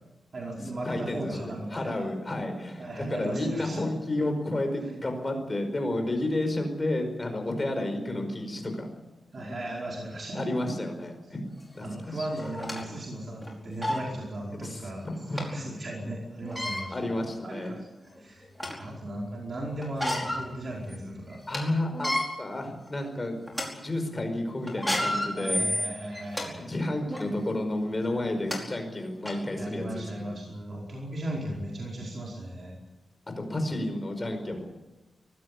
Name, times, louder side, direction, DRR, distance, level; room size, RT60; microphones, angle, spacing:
voice 1, 0.3-2.0 2.8-3.9 9.3-10.4 11.8-15.0 15.3-17.0 17.4-17.8 18.1-18.4 18.8-21.4 25.3-26.6 29.5-32.7, right 1 dB, 40° right, -2 dB, 4.9 m, -36 dB
voice 2, 0.8-8.9 9.5-9.6 10.3-11.4 11.7-12.3 14.6-15.4 16.9-17.7 21.5-23.4 23.7-25.6 26.6-30.4 33.3-34.7, left 1 dB, 20° left, 5 dB, 5.1 m, -31 dB
sound 1, 11.6-11.7 12.4-12.8 13.4-13.5 13.8-14.0 15.4-15.5 16.4-16.8 17.6-17.7 18.2-18.9 19.8-20.4 20.9-21.0 21.3-21.6 21.9-22.2 22.9-23.1 23.5-23.7 24.7-26.5 27.1-27.3 28.1-28.2 28.5-28.6 29.3-29.4, left 1 dB, ahead, 4.9 m, -30 dB
23.0 x 17.0 x 8.6 m, 1.0 s
wide cardioid pair, 175°, 0 cm